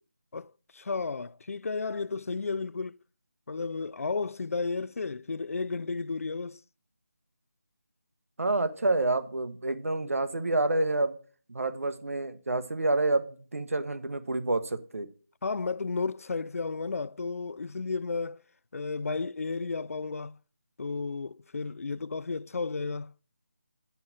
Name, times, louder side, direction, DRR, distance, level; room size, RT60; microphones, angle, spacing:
voice 1, 0.3-3.0 3.5-6.6 15.4-18.4 18.7-20.4 20.8-23.1, left 4 dB, 70° left, 0.4 m, -33 dB
voice 2, 8.4-11.2 11.5-15.1, right 2 dB, 70° right, 1.2 m, -28 dB
9.6 x 5.7 x 6.3 m
figure-of-eight pair, 165°, 8 cm